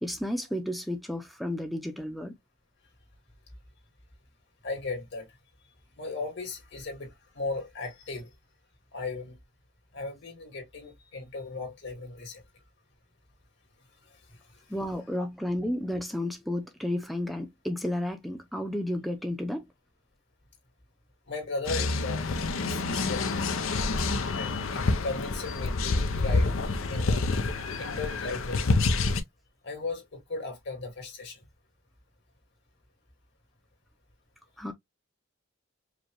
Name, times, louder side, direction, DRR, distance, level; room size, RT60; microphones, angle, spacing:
voice 1, 0.0-2.3 14.7-19.6 34.6-34.7, left 1 dB, ahead, 0.5 m, -32 dB
voice 2, 4.6-5.3 6.0-8.3 8.9-9.4 9.9-12.4 14.1-14.6 21.3-22.2 22.5-23.6 24.0-24.1 24.3-26.5 26.9-27.3 27.8-28.8 29.6-31.4, left 3 dB, 60° left, 2.1 m, -37 dB
sound 1, 21.7-29.2, left 3 dB, 80° left, 0.7 m, -28 dB
5.0 x 2.3 x 3.0 m
head